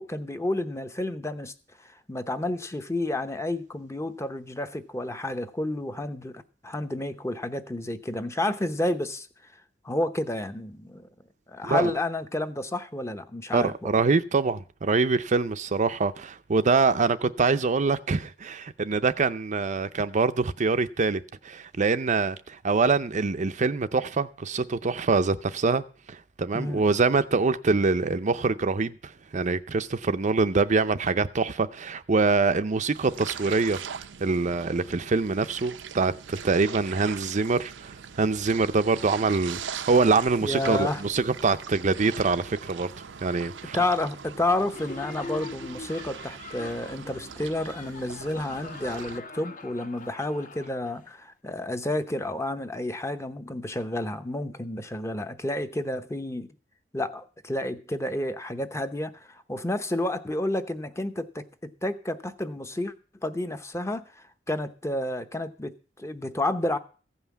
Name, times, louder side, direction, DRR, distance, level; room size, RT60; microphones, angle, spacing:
voice 1, 0.0-1.5 2.1-9.3 9.8-11.1 11.5-13.9 26.5-26.8 40.4-41.0 43.7-56.5 56.9-62.9 63.2-64.0 64.5-66.8, left 1 dB, 15° left, 0.8 m, -30 dB
voice 2, 13.5-25.8 26.1-33.8 34.2-42.9 43.2-43.8, right 4 dB, 40° right, 0.6 m, -24 dB
sound 1, 32.9-49.2, right 7 dB, 90° right, 0.7 m, -41 dB
Laughter, 44.7-51.1, left 3 dB, 45° left, 1.2 m, -42 dB
15.0 x 5.7 x 8.2 m
head